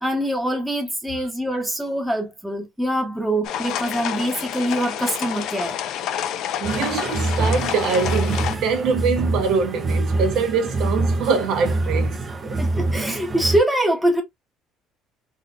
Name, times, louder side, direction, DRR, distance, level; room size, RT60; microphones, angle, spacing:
voice 1, 0.0-5.8 12.6-14.2, right 1 dB, 5° right, 0.9 m, -24 dB
sound 1, 3.4-8.6, left 10 dB, 65° left, 0.4 m, -28 dB
voice 2, 6.2-12.2 12.5-12.6, right 5 dB, 70° right, 1.0 m, -24 dB
sound 2, 6.6-13.6, right 2 dB, 20° right, 0.6 m, -25 dB
3.7 x 2.7 x 2.4 m
cardioid pair, 140°, 0 cm